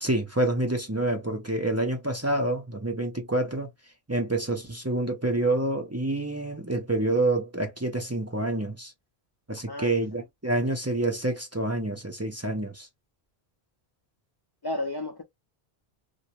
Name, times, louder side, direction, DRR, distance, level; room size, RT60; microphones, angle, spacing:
voice 1, 0.0-3.7 4.1-8.9 9.5-12.9, right 2 dB, 20° right, 0.6 m, -27 dB
voice 2, 9.7-10.0 14.6-15.2, left 1 dB, 45° left, 0.3 m, -32 dB
2.6 x 2.2 x 2.8 m
omnidirectional pair, 1.1 m